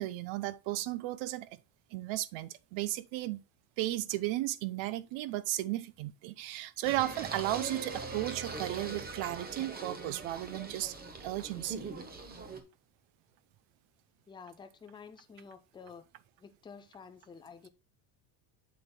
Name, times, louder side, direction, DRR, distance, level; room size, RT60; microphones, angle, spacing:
voice 1, 0.0-1.5 1.9-3.4 3.8-10.9 11.2-11.9, right 16 dB, 75° right, 0.8 m, -35 dB
Singing, 6.8-12.6, right 4 dB, 20° right, 0.8 m, -41 dB
voice 2, 14.3-16.1 16.4-17.7, left 5 dB, 10° left, 0.3 m, -50 dB
7.7 x 7.3 x 2.2 m
cardioid pair, 160°, 48 cm